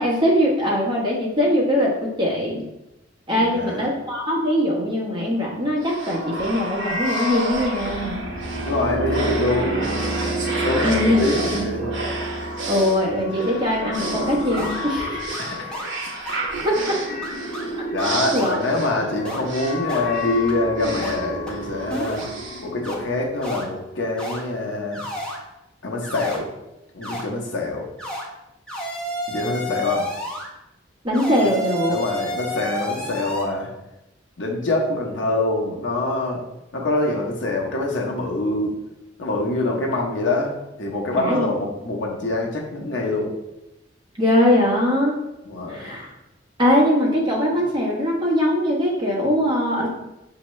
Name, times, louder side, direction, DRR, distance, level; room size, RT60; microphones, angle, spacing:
voice 1, 0.0-2.6 3.3-8.2 10.8-11.2 11.5-11.6 12.7-15.2 16.6-17.0 18.3-18.6 31.0-32.0 41.1-41.5 44.2-45.2 45.7-46.1 46.6-49.9, left 1 dB, 25° right, -3 dB, 1.1 m, -21 dB
voice 2, 3.3-3.9 8.6-9.9 10.6-11.9 15.4-15.9 17.9-22.3 22.6-25.0 25.8-26.5 26.9-27.9 29.3-30.1 31.9-33.7 34.4-36.4 36.7-38.7 39.2-40.5 40.8-43.3 45.5-45.9, left 2 dB, 80° left, -1 dB, 0.9 m, -25 dB
sound 1, 5.8-23.5, right 1 dB, 80° right, 0.9 m, -28 dB
sound 2, 13.9-14.0 14.6-14.8 15.3-15.4 15.7-15.9 16.3-16.4 16.9-17.0 17.2-17.6 18.0-18.6 19.2-19.4 19.9-20.0 20.5-20.6 21.0-21.1 21.5-21.6 21.9-22.3 22.8-22.9 23.4-23.6 24.2-24.4 24.9-25.4 26.0-26.4 27.0-27.2 28.0-28.2 28.7-30.5 31.1-33.4, equal, 5° left, 0.8 m, -31 dB
6.0 x 2.8 x 3.1 m, 0.92 s
head